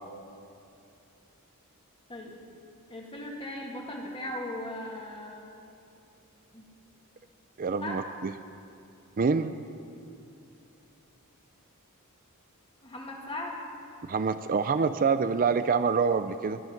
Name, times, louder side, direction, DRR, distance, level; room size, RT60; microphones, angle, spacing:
voice 1, 2.9-5.4 6.5-6.6 7.8-8.0 12.8-13.6, left 1 dB, 25° left, 0 dB, 2.2 m, -38 dB
voice 2, 7.6-8.3 9.2-9.5 14.0-16.6, right 5 dB, 40° right, 11 dB, 0.4 m, -26 dB
20.5 x 11.0 x 5.9 m, 2.7 s
head